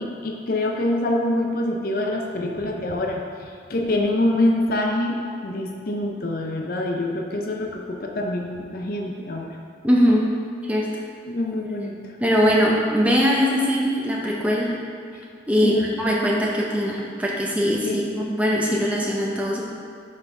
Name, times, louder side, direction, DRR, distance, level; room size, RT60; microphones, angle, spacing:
voice 1, 0.0-5.2 5.4-9.5 11.3-11.9 15.6-15.9 17.8-18.0, left 1 dB, 50° left, 1 dB, 0.5 m, -25 dB
voice 2, 9.8-10.3 10.7-10.9 12.2-14.7 15.5-19.6, equal, 10° right, -3 dB, 0.7 m, -21 dB
5.5 x 4.8 x 5.2 m, 2.2 s
head